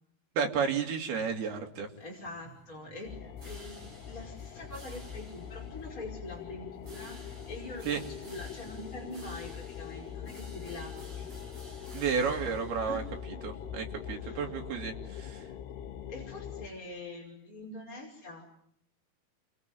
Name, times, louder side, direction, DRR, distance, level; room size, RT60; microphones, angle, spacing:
voice 1, 0.4-1.9 7.9-8.0 11.9-13.0 13.4-15.4, right 6 dB, 75° right, 3 dB, 4.8 m, -32 dB
sound 1, 1.9-14.2, right 1 dB, 35° right, 6.3 m, -54 dB
voice 2, 2.0-11.3 12.9-13.0 13.6-13.8 14.2-14.5 16.1-18.5, left 2 dB, 20° left, -3 dB, 5.6 m, -44 dB
sound 2, 3.0-16.7, left 8 dB, 85° left, 3.5 m, -43 dB
28.5 x 22.5 x 9.3 m, 0.70 s
omnidirectional pair, 4.5 m